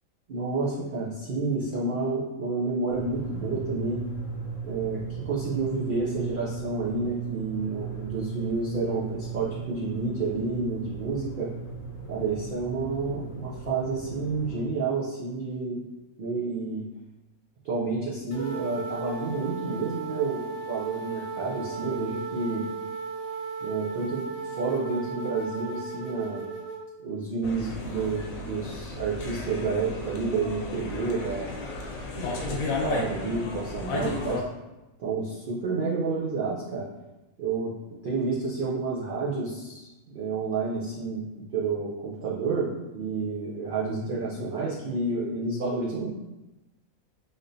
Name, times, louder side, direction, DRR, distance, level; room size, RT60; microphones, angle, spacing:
voice 1, 0.3-4.0 4.6-11.5 12.1-15.8 16.2-16.8 17.6-22.7 23.6-26.5 27.0-31.6 32.3-34.4 35.0-36.9 37.4-46.1, right 3 dB, 70° right, -5 dB, 0.5 m, -30 dB
sound 1, 2.9-14.6, right 6 dB, 65° left, 0.8 m, -36 dB
sound 2, 18.3-26.8, right 4 dB, 35° left, 0.6 m, -36 dB
sound 3, 27.4-34.4, left 3 dB, 90° left, 1.0 m, -34 dB
3.5 x 2.6 x 2.5 m, 1.0 s
omnidirectional pair, 1.4 m